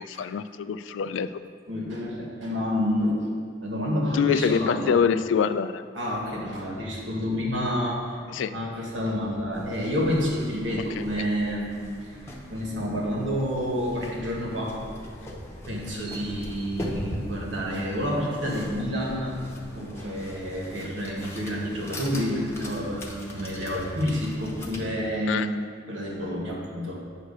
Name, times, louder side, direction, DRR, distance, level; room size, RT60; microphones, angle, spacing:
voice 1, 0.0-1.4 4.1-5.8 8.3-8.5 11.0-11.3 25.3-25.5, left 6 dB, 85° left, 13 dB, 0.3 m, -25 dB
voice 2, 1.7-3.3 3.6-4.9 5.9-8.2 8.5-12.2 12.5-14.8 15.7-19.4 19.7-25.5 25.9-27.1, equal, 85° right, -2 dB, 1.6 m, -29 dB
sound 1, 9.5-24.8, left 1 dB, 15° left, 0.8 m, -40 dB
9.0 x 3.2 x 6.5 m, 2.1 s
head